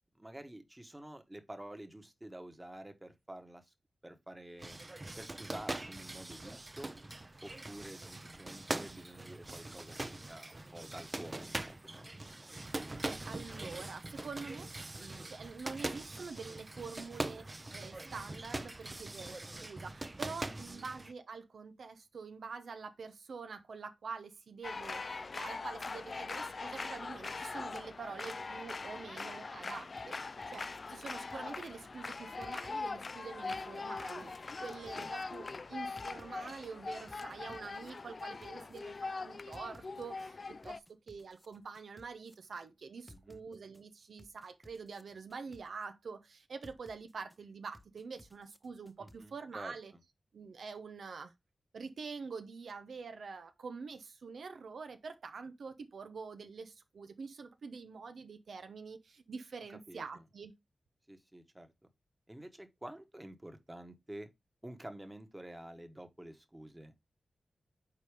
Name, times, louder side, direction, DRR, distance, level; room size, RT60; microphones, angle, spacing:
voice 1, 0.1-3.7 4.0-4.8 5.2-6.9 7.4-12.1 20.5-20.9 34.9-35.1 43.1-43.4 49.0-50.0 59.7-60.2 61.1-61.7 62.3-64.3 64.6-66.9, right 1 dB, 15° right, 1.2 m, -49 dB
sound 1, 4.6-21.1, right 2 dB, 30° right, 0.6 m, -42 dB
voice 2, 13.0-40.4 40.6-49.9 50.3-51.3 51.7-60.5, right 5 dB, 75° right, 0.6 m, -46 dB
sound 2, 24.6-40.8, left 3 dB, 50° left, 0.3 m, -42 dB
sound 3, 30.0-31.7 32.4-33.2 33.5-35.2 36.0-36.7 37.1-38.8 39.5-40.3 40.6-42.4 43.1-43.8 44.2-45.9 46.6-47.4 47.7-49.2, left 1 dB, 5° left, 0.7 m, -59 dB
5.0 x 4.2 x 4.9 m
cardioid pair, 55°, 0 cm